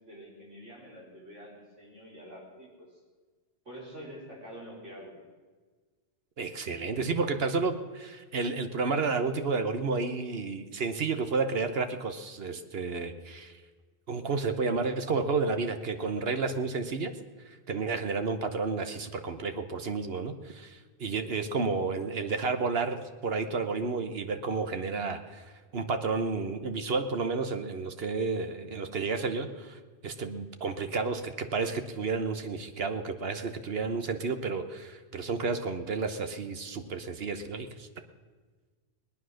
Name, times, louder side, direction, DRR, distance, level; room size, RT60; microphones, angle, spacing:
voice 1, 0.0-2.9 3.6-5.1, equal, 80° right, -3 dB, 4.5 m, -46 dB
voice 2, 6.4-13.6 14.1-17.1 17.5-25.5 25.7-37.9, right 4 dB, 55° right, 8 dB, 1.2 m, -31 dB
20.5 x 9.5 x 6.4 m, 1.4 s
omnidirectional pair, 1.2 m